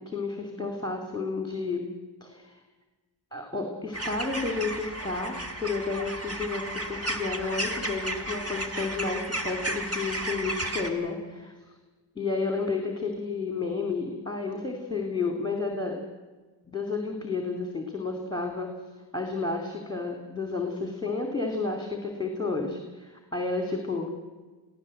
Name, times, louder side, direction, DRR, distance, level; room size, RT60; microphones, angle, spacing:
voice 1, 0.0-1.9 2.2-2.6 3.3-11.5 12.2-16.0 16.7-18.7 19.1-24.1, left 3 dB, 10° left, 3 dB, 2.6 m, -31 dB
sound 1, 3.9-10.9, right 1 dB, 30° right, 2.5 m, -33 dB
24.0 x 16.0 x 7.7 m, 1.3 s
wide cardioid pair, 75°, 44 cm